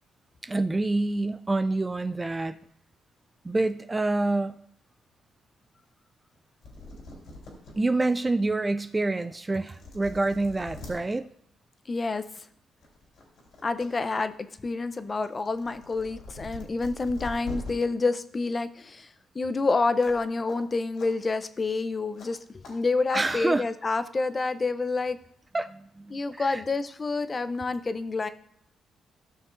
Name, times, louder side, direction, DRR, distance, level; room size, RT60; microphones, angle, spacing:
voice 1, 0.4-2.6 3.4-4.6 7.8-11.3 23.1-23.7 25.5-26.6, right 2 dB, 20° right, 10 dB, 0.3 m, -27 dB
sound 1, 6.4-6.5 6.6-7.7 8.3-8.4 9.2-9.3 9.7-10.9 12.2-12.4 12.8-13.9 14.2-17.7 20.0-20.2 20.5-20.6 20.9-21.1 22.2-22.3 22.6-22.7 23.1-23.2, left 2 dB, 70° left, 3.2 m, -43 dB
voice 2, 11.9-12.2 13.6-14.3 14.6-19.1 19.3-22.4 22.7-25.2 26.1-28.3, left 3 dB, 30° left, 12 dB, 0.6 m, -28 dB
14.5 x 6.4 x 2.5 m, 0.71 s
cardioid pair, 90°, 0 cm